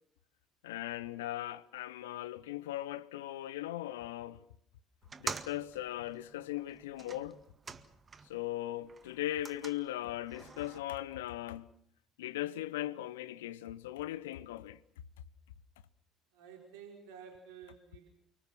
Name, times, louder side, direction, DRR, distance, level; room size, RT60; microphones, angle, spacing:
voice 1, 0.6-4.4 5.2-7.4 8.3-11.7 12.2-14.8, left 14 dB, 70° left, 1.0 m, -39 dB
sound 1, 5.0-8.5 8.8-10.8, right 5 dB, 30° right, 1.8 m, -46 dB
voice 2, 16.3-18.1, right 7 dB, 65° right, 4.7 m, -52 dB
29.0 x 25.0 x 6.1 m
figure-of-eight pair, 55°, 0 cm